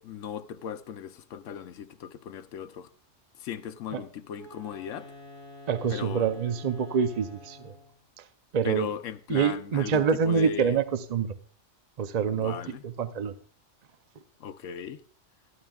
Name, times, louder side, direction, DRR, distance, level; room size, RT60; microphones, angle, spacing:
voice 1, 0.0-2.9 3.4-5.1 5.9-6.3 8.6-10.8 12.3-12.8 14.4-15.0, left 7 dB, 85° left, 1.0 m, -37 dB
Wind instrument woodwind instrument, 4.3-8.0, left 1 dB, 85° right, 7.1 m, -48 dB
voice 2, 5.7-7.7 8.2-8.3 8.5-8.9 9.3-11.3 12.0-13.3, right 6 dB, 50° right, 0.5 m, -26 dB
13.0 x 12.5 x 2.3 m
omnidirectional pair, 1.3 m